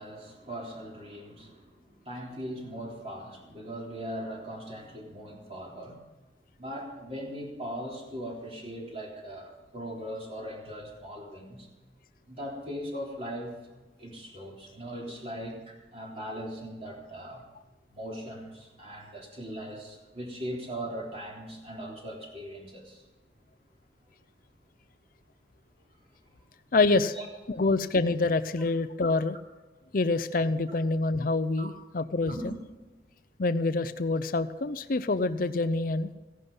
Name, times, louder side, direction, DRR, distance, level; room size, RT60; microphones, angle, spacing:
voice 1, 0.0-6.0 6.5-11.7 12.2-13.5 14.0-17.4 17.9-23.0 27.1-27.3 31.6-31.7 32.3-32.6, equal, 35° right, -2 dB, 3.5 m, -39 dB
voice 2, 26.7-27.2 27.5-29.4 29.9-32.5 33.4-36.1, left 3 dB, 50° left, 10 dB, 0.6 m, -26 dB
15.5 x 11.0 x 5.4 m, 1.2 s
head